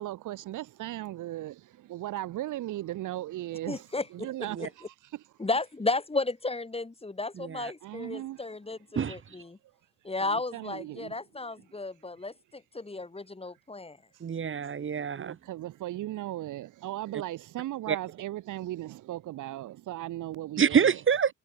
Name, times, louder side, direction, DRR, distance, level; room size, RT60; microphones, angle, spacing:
voice 1, 0.0-5.2 7.8-8.4 10.2-11.1 15.2-21.0, right 14 dB, 85° right, 6.0 m, -37 dB
voice 2, 3.7-4.3 4.6-4.7 5.4-9.6 10.0-14.0, left 3 dB, 20° left, 7.0 m, -33 dB
voice 3, 7.4-7.7 8.9-9.2 14.2-15.4 17.9-18.0 20.6-21.3, right 7 dB, 40° right, 1.5 m, -26 dB
cardioid pair, 90°, 30 cm